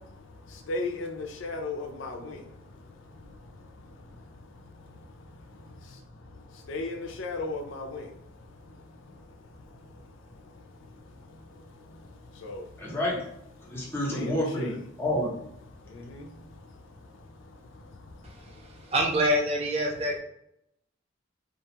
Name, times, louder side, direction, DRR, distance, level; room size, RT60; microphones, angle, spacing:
voice 1, 0.7-2.4 6.7-8.0 12.4-12.6 14.1-14.7 16.1-16.2, left 2 dB, 75° left, 3 dB, 0.4 m, -34 dB
voice 2, 12.8-13.3 13.6-15.4, left 1 dB, 10° left, -3 dB, 0.6 m, -29 dB
voice 3, 18.2-20.2, equal, 30° right, 1 dB, 0.3 m, -27 dB
2.5 x 2.2 x 2.8 m, 0.76 s
head